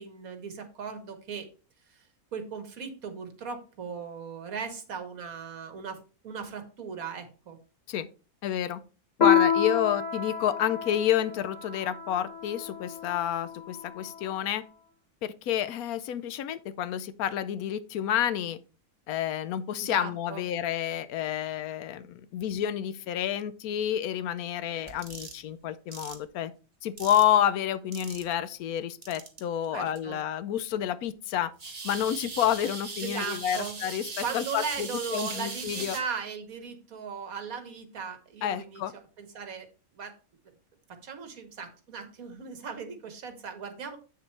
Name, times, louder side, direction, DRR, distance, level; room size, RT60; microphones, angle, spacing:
voice 1, 0.0-1.5 1.9-2.0 2.3-7.6 19.8-20.4 29.7-30.2 33.0-33.8 34.2-39.7 40.0-40.1 40.9-44.0, right 6 dB, 65° right, 1.6 m, -38 dB
voice 2, 8.4-8.8 9.2-14.6 15.2-18.6 19.1-26.5 26.8-31.5 31.8-36.0 38.4-38.9, left 10 dB, 75° left, 1.0 m, -29 dB
Piano, 9.2-14.2, left 7 dB, 35° left, 1.0 m, -28 dB
sound 1, 24.9-25.4 25.9-26.1 27.0-27.3 27.9-28.3 29.0-29.4 29.9-30.0 31.6-36.0, right 4 dB, 30° right, 1.0 m, -39 dB
8.1 x 6.7 x 3.2 m
omnidirectional pair, 1.6 m